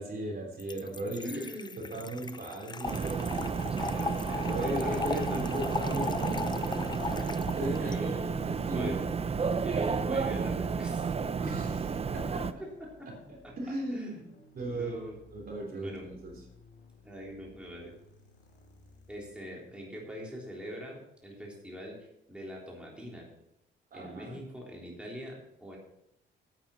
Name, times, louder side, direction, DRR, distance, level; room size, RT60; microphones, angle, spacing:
voice 1, 0.0-1.3 1.8-3.5 4.4-7.2 7.6-9.1 11.4-12.5 13.6-14.2 14.5-15.0 15.3-16.4 23.9-24.4, right 1 dB, 50° right, 1 dB, 3.5 m, -37 dB
Trickle dribble / Fill (with liquid), 0.6-8.0, left 4 dB, 20° left, 0.6 m, -37 dB
voice 2, 1.2-1.7 3.3-5.4 7.0-7.5 7.8-9.0 9.6-11.1 12.6-13.1 13.4-13.5 13.9-14.2 14.6-15.2 15.8-16.0 17.0-17.9 19.1-23.3 23.9-25.8, equal, 5° right, -3 dB, 3.5 m, -43 dB
sound 1, 2.8-12.5, right 5 dB, 30° right, 0.7 m, -32 dB
sound 2, 5.8-19.5, left 4 dB, 60° left, 2.8 m, -55 dB
9.2 x 8.8 x 6.3 m, 0.80 s
cardioid pair, 90°, 20 cm